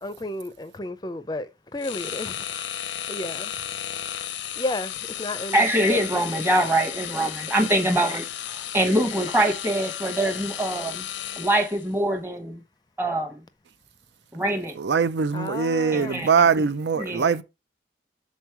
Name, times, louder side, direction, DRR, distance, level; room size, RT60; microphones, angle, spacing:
voice 1, 0.0-2.8 3.1-3.6 4.6-5.6 15.3-16.2, left 2 dB, 20° left, 0.5 m, -33 dB
sound 1, 1.8-11.9, left 10 dB, 85° left, 0.6 m, -34 dB
voice 2, 5.5-8.3 8.7-11.0 11.3-12.6 13.0-13.4 14.3-14.8 15.9-16.7 17.0-17.3, right 1 dB, 10° right, 1.0 m, -24 dB
voice 3, 14.8-17.4, right 6 dB, 75° right, 0.5 m, -22 dB
6.3 x 4.0 x 4.6 m
head